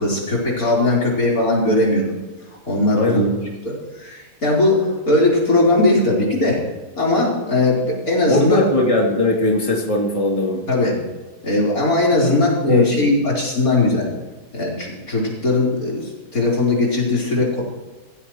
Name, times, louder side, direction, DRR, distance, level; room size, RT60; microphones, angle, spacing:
voice 1, 0.0-2.1 2.7-3.3 3.6-6.6 7.0-8.6 10.7-11.0 11.4-14.1 14.5-17.6, left 2 dB, 65° left, -4 dB, 4.6 m, -19 dB
voice 2, 8.3-10.7 12.6-12.9, left 2 dB, 20° left, -3 dB, 2.8 m, -19 dB
16.5 x 15.5 x 3.1 m, 1.2 s
omnidirectional pair, 1.7 m